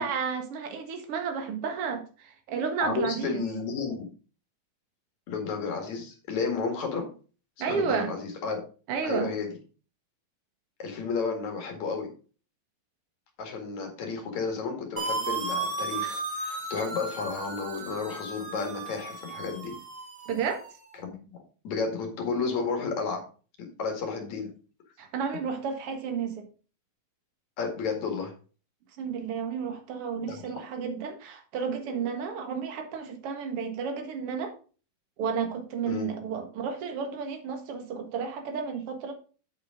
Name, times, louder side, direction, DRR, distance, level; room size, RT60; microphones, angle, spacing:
voice 1, 0.0-3.4 7.6-8.1 8.9-9.3 20.3-20.6 25.0-26.5 29.0-34.5 35.2-39.1, right 6 dB, 50° right, 5 dB, 2.0 m, -32 dB
voice 2, 2.8-4.1 5.3-7.1 7.7-8.6 9.0-9.6 10.8-12.1 13.4-19.7 21.0-21.3 21.6-23.2 23.6-24.5 27.6-28.3 30.3-30.6 35.9-36.1, left 4 dB, 55° left, 3 dB, 3.1 m, -32 dB
sound 1, 15.0-20.7, right 3 dB, 30° right, 1.7 m, -35 dB
8.4 x 8.4 x 3.7 m, 0.37 s
omnidirectional pair, 4.3 m